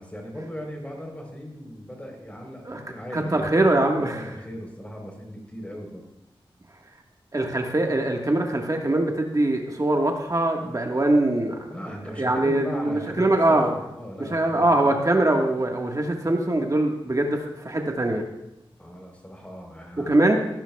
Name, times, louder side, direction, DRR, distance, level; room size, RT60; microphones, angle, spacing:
voice 1, 0.0-3.5 4.1-6.1 11.7-15.0 18.8-20.2, equal, 15° left, 1 dB, 3.8 m, -38 dB
voice 2, 3.1-4.2 7.3-11.7 12.2-13.7 14.3-18.2 20.1-20.4, right 2 dB, 35° right, 2 dB, 1.5 m, -22 dB
17.0 x 12.0 x 2.3 m, 0.89 s
cardioid pair, 50°, 10 cm